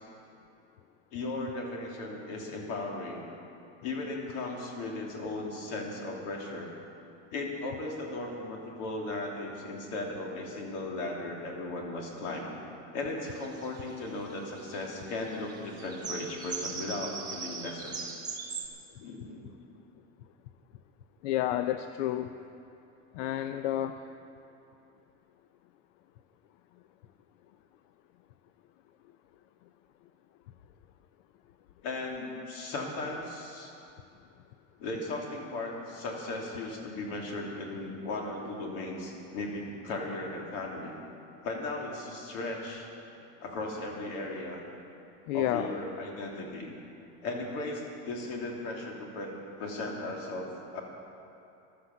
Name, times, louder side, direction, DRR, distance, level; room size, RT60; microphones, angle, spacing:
voice 1, 1.1-3.3 3.8-6.7 7.3-12.5 12.9-18.0 19.0-19.5 31.8-33.7 34.8-40.9 41.4-42.9 43.4-44.6 45.3-46.7 47.2-49.3 49.6-50.8, left 2 dB, 55° left, 0 dB, 3.0 m, -36 dB
sound 1, 13.3-18.7, right 5 dB, 10° right, 1.3 m, -40 dB
voice 2, 21.2-22.3 23.1-24.0 45.3-45.7, left 13 dB, 80° left, 10 dB, 0.7 m, -30 dB
13.5 x 12.5 x 7.2 m, 2.7 s
supercardioid pair, 165°, 38 cm